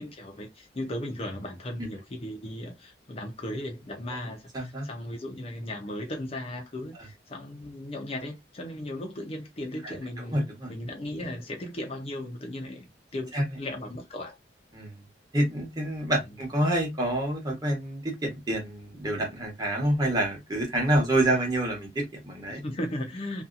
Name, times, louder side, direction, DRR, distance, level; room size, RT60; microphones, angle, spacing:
voice 1, 0.0-10.4 10.7-12.8 13.1-14.4 20.6-20.7 21.3-21.4 22.5-23.4, left 1 dB, 35° left, 0.5 m, -36 dB
voice 2, 4.5-4.9 9.8-9.9 10.3-10.7 13.3-13.4 14.7-15.0 15.3-22.6, right 1 dB, 20° right, 1.0 m, -27 dB
2.7 x 2.3 x 2.4 m
head